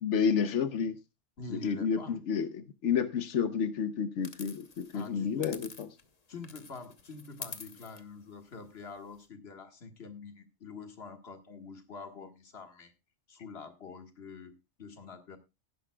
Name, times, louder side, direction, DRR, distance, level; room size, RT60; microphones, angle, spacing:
voice 1, 0.0-1.0 1.5-5.7, left 6 dB, 90° left, 1.2 m, -30 dB
voice 2, 1.4-2.2 4.9-5.6 6.3-12.9 13.3-14.5 14.8-15.4, left 4 dB, 60° left, 1.8 m, -46 dB
sound 1, 4.2-6.2 6.4-9.3, left 4 dB, 35° left, 1.1 m, -48 dB
16.5 x 11.0 x 2.3 m
omnidirectional pair, 1.2 m